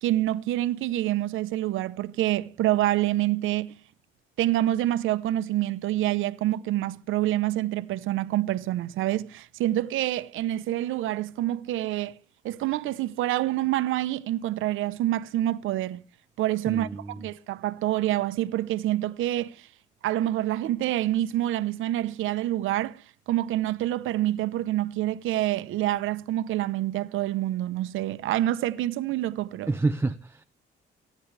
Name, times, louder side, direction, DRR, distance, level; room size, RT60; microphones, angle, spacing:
voice 1, 0.0-3.7 4.4-12.1 12.4-16.0 16.4-19.7 20.0-29.7, right 14 dB, 85° right, 0.9 m, -27 dB
voice 2, 16.7-17.2 29.7-30.4, right 3 dB, 10° right, 0.6 m, -28 dB
25.0 x 10.0 x 3.4 m
cardioid pair, 90°, 20 cm